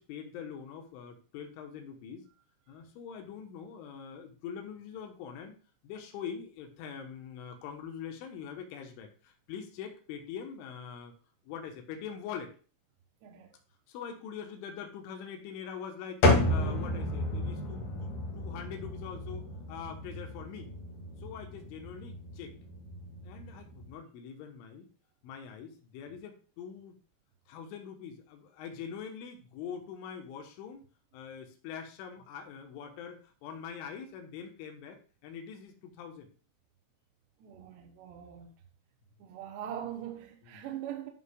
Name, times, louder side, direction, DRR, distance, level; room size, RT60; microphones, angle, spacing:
voice 1, 0.0-2.3 2.7-5.5 5.8-11.1 11.5-12.5 13.9-20.7 21.2-22.5 23.2-24.9 25.2-27.0 27.5-30.8 31.1-36.3, left 7 dB, 80° left, 3.4 m, -43 dB
voice 2, 13.2-13.5 37.4-38.5 39.2-41.1, right 10 dB, 75° right, 2.7 m, -42 dB
sound 1, 16.2-23.9, left 1 dB, 50° left, 3.1 m, -32 dB
11.5 x 5.6 x 2.3 m
omnidirectional pair, 5.7 m